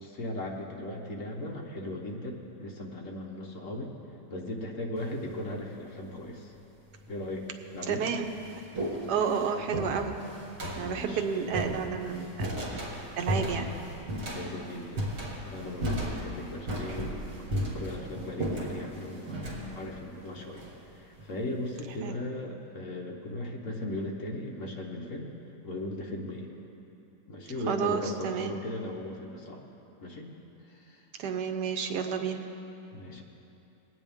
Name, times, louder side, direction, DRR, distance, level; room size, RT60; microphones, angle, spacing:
voice 1, 0.0-3.9 4.3-6.5 7.1-8.1 8.7-9.1 10.8-11.4 14.2-15.1 15.4-20.7 20.9-25.3 25.6-26.5 27.3-29.6 30.0-30.3 30.7-31.0 32.9-33.2, left 1 dB, 50° left, 0 dB, 1.4 m, -38 dB
sound 1, 5.0-5.4 6.4-6.5 7.3-7.4 7.8-21.3, equal, 55° right, 2.2 m, -35 dB
voice 2, 7.9-8.3 9.1-10.2 10.8-12.8 13.2-13.7 22.0-22.2 27.7-28.6 31.2-32.5, right 6 dB, 75° right, 5 dB, 1.4 m, -31 dB
20.5 x 9.0 x 3.6 m, 2.9 s
omnidirectional pair, 1.8 m